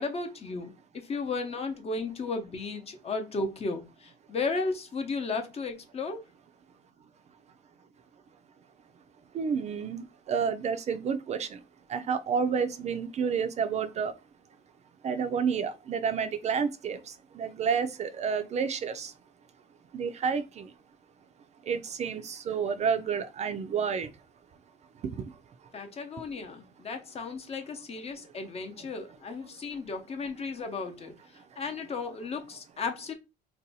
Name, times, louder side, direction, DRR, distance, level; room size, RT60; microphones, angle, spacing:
voice 1, 0.0-6.2 25.7-31.1 31.6-33.1, left 4 dB, 35° left, 0.7 m, -34 dB
voice 2, 9.3-11.6 11.9-14.1 15.0-17.0 17.3-19.1 19.9-20.7 21.7-24.1, right 6 dB, 40° right, 0.4 m, -30 dB
2.6 x 2.2 x 4.0 m
cardioid pair, 110°, 17 cm